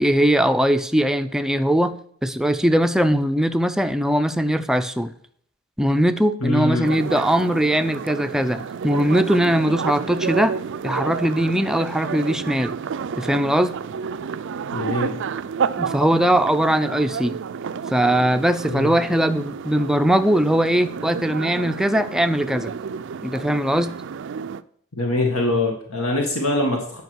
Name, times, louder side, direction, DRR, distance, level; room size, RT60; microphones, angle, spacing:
voice 1, 0.0-5.1 5.8-10.6 10.8-12.7 13.2-13.7 15.8-17.4 17.9-22.7 23.2-23.9, right 1 dB, ahead, 0.5 m, -20 dB
voice 2, 6.4-6.9 14.7-15.2 18.7-18.9 25.0-27.0, left 2 dB, 75° left, 1.7 m, -23 dB
sound 1, 6.8-24.6, right 6 dB, 55° right, 0.4 m, -30 dB
9.5 x 5.3 x 6.3 m
head